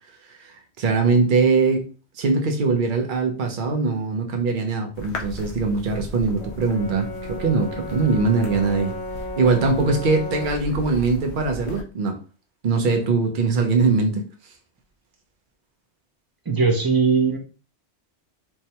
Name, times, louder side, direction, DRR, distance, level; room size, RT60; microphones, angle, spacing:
voice 1, 0.4-1.9 2.2-8.9 9.4-12.2 12.6-14.2, right 4 dB, 50° right, 4 dB, 0.8 m, -21 dB
sound 1, 4.9-11.8, left 2 dB, 80° left, 1.0 m, -37 dB
Brass instrument, 6.4-10.7, left 1 dB, 45° left, 0.7 m, -34 dB
voice 2, 16.5-17.4, right 4 dB, 25° right, 3 dB, 0.6 m, -19 dB
4.6 x 2.2 x 2.8 m, 0.35 s
omnidirectional pair, 1.2 m